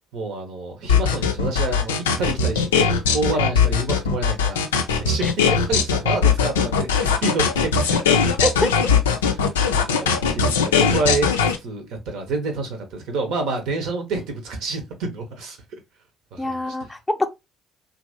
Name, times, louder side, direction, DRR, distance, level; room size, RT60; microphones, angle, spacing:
voice 1, 0.1-8.0 9.3-9.5 9.7-11.3 11.6-15.6 16.3-16.8, right 3 dB, 65° right, 0.8 m, -28 dB
sound 1, 0.9-11.6, left 6 dB, 80° left, 0.3 m, -19 dB
voice 2, 8.4-8.8 16.4-17.3, left 1 dB, 10° left, 0.5 m, -24 dB
2.8 x 2.5 x 2.6 m
figure-of-eight pair, 50°, 0 cm